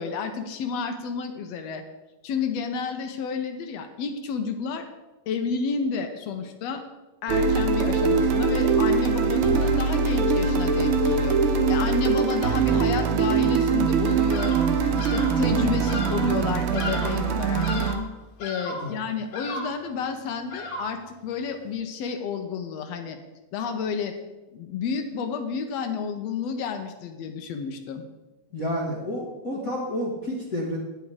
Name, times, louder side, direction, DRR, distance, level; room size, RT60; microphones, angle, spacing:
voice 1, 0.0-1.8 2.2-4.9 5.3-6.8 7.2-14.6 15.0-17.7 18.4-23.2 23.5-24.2 24.5-28.0, left 6 dB, 75° left, 7 dB, 1.8 m, -30 dB
sound 1, 7.3-17.9, right 5 dB, 65° right, 1.4 m, -22 dB
Bird vocalization bird call bird song, 14.3-14.7 15.0-15.4 15.9-16.3 16.7-17.3 17.6-18.1 18.4-18.9 19.3-19.8 20.5-21.0, left 2 dB, 90° left, 3.0 m, -34 dB
voice 2, 28.5-30.8, equal, 45° left, -2 dB, 1.2 m, -30 dB
9.8 x 7.4 x 4.7 m, 1.1 s
omnidirectional pair, 3.3 m